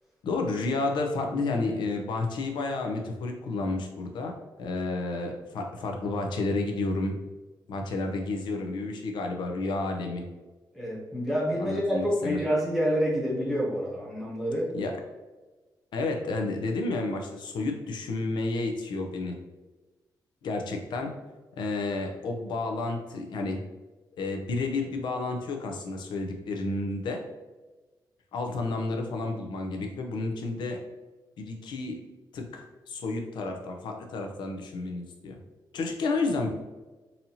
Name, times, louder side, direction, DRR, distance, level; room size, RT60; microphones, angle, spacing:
voice 1, 0.2-4.3 4.6-7.2 7.7-10.2 11.6-12.4 14.7-14.9 15.9-19.4 20.4-21.1 21.6-23.6 24.2-27.2 28.3-30.8 31.4-32.0 32.3-35.4 35.7-36.5, left 3 dB, 85° left, 3 dB, 0.6 m, -31 dB
voice 2, 10.7-14.7, equal, ahead, -6 dB, 0.9 m, -28 dB
4.1 x 2.8 x 2.8 m, 1.2 s
wide cardioid pair, 150°, 8 cm